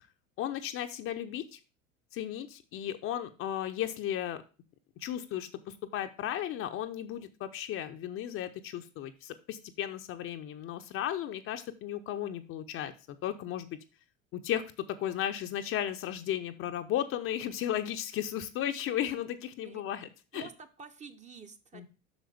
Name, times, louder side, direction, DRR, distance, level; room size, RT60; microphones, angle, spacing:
voice 1, 0.4-1.6 2.1-4.4 5.0-13.8 14.3-20.5 21.7-21.9, left 11 dB, 30° left, 8 dB, 0.7 m, -35 dB
voice 2, 20.3-21.9, right 6 dB, 15° right, 8 dB, 0.8 m, -49 dB
8.0 x 6.1 x 3.3 m, 0.33 s
figure-of-eight pair, 75°, 41 cm